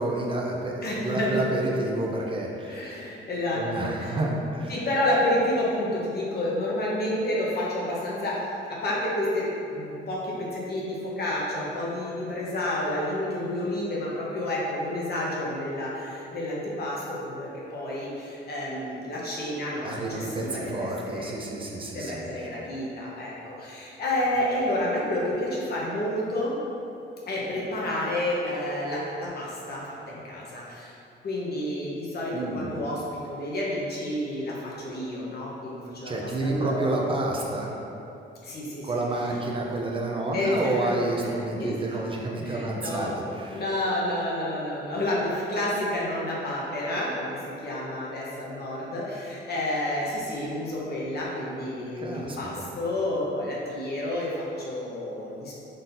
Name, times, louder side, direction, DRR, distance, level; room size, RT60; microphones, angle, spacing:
voice 1, 0.0-2.8 3.5-4.7 19.8-22.3 32.3-32.8 36.1-37.7 38.8-43.6 52.0-52.7, right 2 dB, 25° right, -1 dB, 0.6 m, -29 dB
voice 2, 0.8-1.4 2.6-4.1 4.7-21.3 21.9-26.6 27.3-30.9 31.2-36.1 36.4-37.0 38.4-39.0 40.3-40.9 41.2-41.7 42.4-43.2 43.5-55.5, left 1 dB, 55° left, -5 dB, 0.9 m, -30 dB
4.0 x 2.7 x 3.8 m, 2.8 s
cardioid pair, 90°, 20 cm